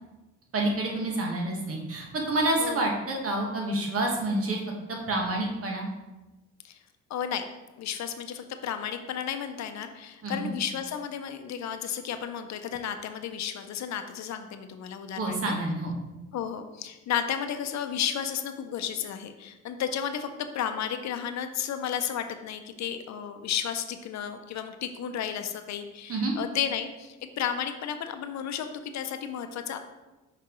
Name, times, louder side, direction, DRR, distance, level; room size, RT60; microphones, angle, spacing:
voice 1, 0.5-4.6 4.9-5.9 10.2-10.5 15.2-15.9 26.1-26.3, right 2 dB, 50° right, 0 dB, 1.5 m, -28 dB
voice 2, 7.1-7.5 7.8-15.6 16.3-29.8, left 8 dB, 65° left, 8 dB, 0.6 m, -33 dB
5.8 x 5.7 x 3.1 m, 1.1 s
cardioid pair, 90°, 30 cm